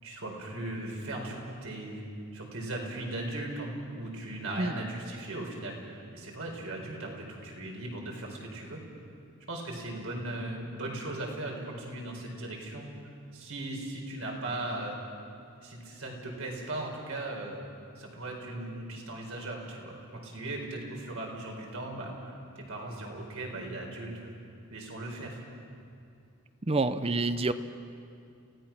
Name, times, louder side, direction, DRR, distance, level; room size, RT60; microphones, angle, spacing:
voice 1, 0.0-2.0 2.3-8.8 9.5-12.9 13.3-15.0 15.6-17.6 18.0-24.3 24.7-25.6, right 1 dB, 70° right, 0 dB, 4.5 m, -38 dB
voice 2, 26.6-27.5, right 2 dB, 25° right, 12 dB, 0.6 m, -27 dB
28.5 x 17.0 x 6.0 m, 2.5 s
head